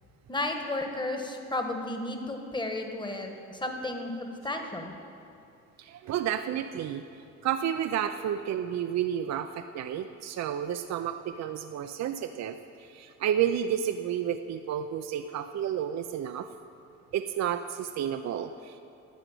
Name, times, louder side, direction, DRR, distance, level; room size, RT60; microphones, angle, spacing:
voice 1, 0.3-4.9, left 2 dB, 15° left, 4 dB, 1.3 m, -33 dB
voice 2, 5.8-7.0 7.4-16.5 17.1-18.8, right 9 dB, 60° right, 8 dB, 0.5 m, -31 dB
10.5 x 6.6 x 9.2 m, 2.6 s
cardioid pair, 90°, 30 cm